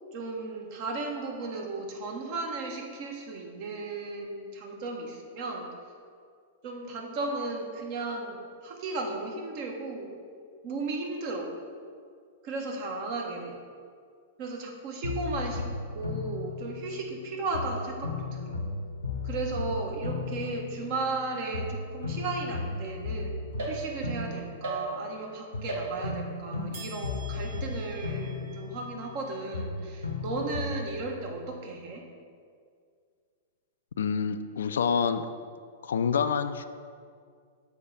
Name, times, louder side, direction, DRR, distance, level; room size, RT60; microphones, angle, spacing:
voice 1, 0.1-5.7 6.6-10.1 10.6-11.5 12.4-13.6 14.4-15.6 15.9-18.6 19.2-32.0, right 3 dB, 45° right, 1 dB, 1.2 m, -35 dB
sound 1, 15.0-17.2 17.5-21.2 21.5-25.2 25.5-29.2 29.5-31.1, left 3 dB, 85° left, 0.7 m, -35 dB
sound 2, 23.6-24.2 24.6-25.3 25.7-26.3 26.7-30.2, right 2 dB, 65° right, 1.6 m, -40 dB
voice 2, 34.0-35.3 35.8-36.7, left 6 dB, 65° left, 11 dB, 0.3 m, -27 dB
7.1 x 4.2 x 5.1 m, 2.1 s
figure-of-eight pair, 100°, 0 cm